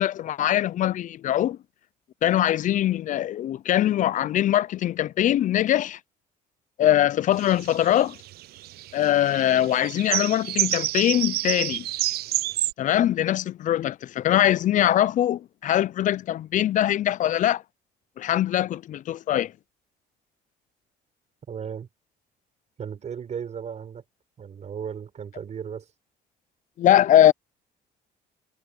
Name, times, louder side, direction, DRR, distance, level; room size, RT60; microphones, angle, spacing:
voice 1, 0.0-1.6 2.2-6.0 6.8-8.2 8.9-11.8 12.8-17.6 18.2-19.5 26.8-27.3, left 12 dB, 50° left, 0.5 m, -22 dB
sound 1, 7.4-12.7, right 16 dB, 70° right, 0.5 m, -28 dB
voice 2, 21.5-21.9 22.8-24.0 24.4-25.9, right 7 dB, 40° right, 4.6 m, -35 dB
cardioid pair, 110°, 17 cm